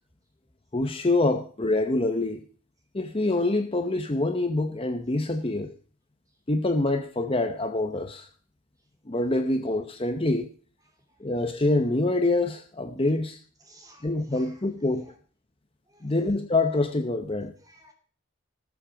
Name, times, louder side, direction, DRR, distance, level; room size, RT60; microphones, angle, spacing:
voice 1, 0.7-2.4 2.9-5.7 6.5-8.3 9.1-10.5 11.2-13.4 14.0-15.1 16.0-17.5, left 2 dB, 25° left, 0.8 m, -25 dB
voice 2, 10.9-11.2 13.6-14.6 15.0-15.1 15.9-16.4 17.6-17.9, right 1 dB, 15° right, 2.5 m, -56 dB
18.5 x 7.5 x 5.1 m
head